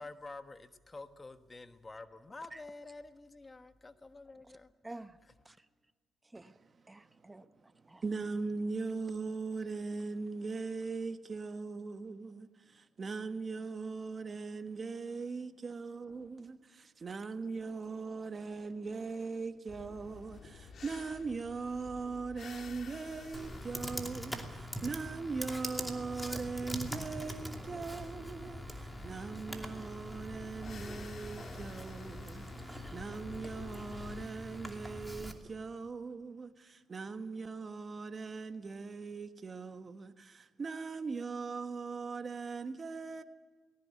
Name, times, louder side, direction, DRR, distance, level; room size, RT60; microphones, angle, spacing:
voice 1, 0.0-4.7, left 3 dB, 25° left, 1.3 m, -49 dB
voice 2, 4.8-5.2 5.4-5.7 6.2-6.6 6.9-8.0, right 2 dB, 15° right, 1.0 m, -50 dB
voice 3, 8.0-43.2, right 4 dB, 35° right, 1.5 m, -40 dB
sound 1, 19.7-34.2, left 5 dB, 55° left, 2.0 m, -51 dB
Computer keyboard, 23.3-35.3, equal, ahead, 2.8 m, -43 dB
19.0 x 18.0 x 9.7 m
cardioid pair, 90°, 0 cm